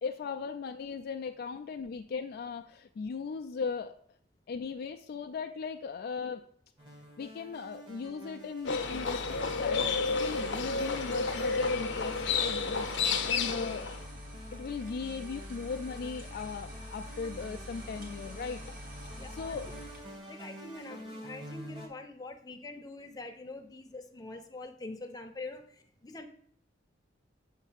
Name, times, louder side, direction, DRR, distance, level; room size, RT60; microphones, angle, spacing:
voice 1, 0.0-3.9 4.5-6.4 7.2-13.8 14.5-18.6 19.0-19.7, left 5 dB, 55° left, 7 dB, 0.3 m, -38 dB
sound 1, 6.8-21.9, right 1 dB, 25° right, 1.1 m, -49 dB
Livestock farm animals working animals, 8.6-14.0, left 4 dB, 70° left, 0.7 m, -31 dB
sound 2, 8.6-20.2, left 1 dB, 50° right, 1.4 m, -45 dB
voice 2, 19.1-19.6 20.3-26.3, left 2 dB, 20° left, 4 dB, 0.6 m, -44 dB
7.2 x 2.6 x 5.7 m, 0.62 s
head